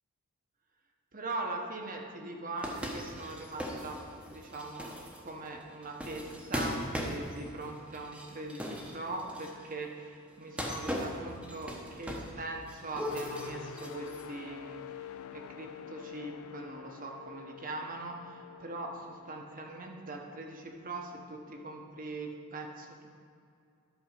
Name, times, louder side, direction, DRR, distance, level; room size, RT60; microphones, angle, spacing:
voice 1, 1.1-4.9 5.2-23.1, right 2 dB, 40° right, 2 dB, 1.1 m, -41 dB
sound 1, 2.6-9.7 10.4-12.4 12.7-14.2, equal, 5° right, 1.0 m, -39 dB
sound 2, 13.1-20.9 21.4-21.6, left 9 dB, 70° left, 0.3 m, -48 dB
11.5 x 4.7 x 6.5 m, 2.5 s
head